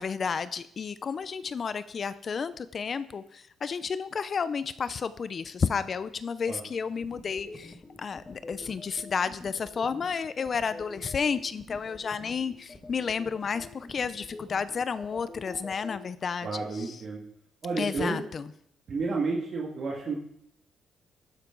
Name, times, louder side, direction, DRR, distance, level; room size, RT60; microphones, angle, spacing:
voice 1, 0.0-16.5 17.8-18.4, left 6 dB, 45° left, 14 dB, 0.5 m, -31 dB
sound 1, 7.0-16.0, left 2 dB, 20° left, 1.8 m, -44 dB
voice 2, 16.4-17.2 17.6-18.2 18.9-20.1, right 3 dB, 55° right, -3 dB, 2.0 m, -31 dB
12.0 x 10.5 x 3.9 m, 0.70 s
cardioid pair, 90°, 0 cm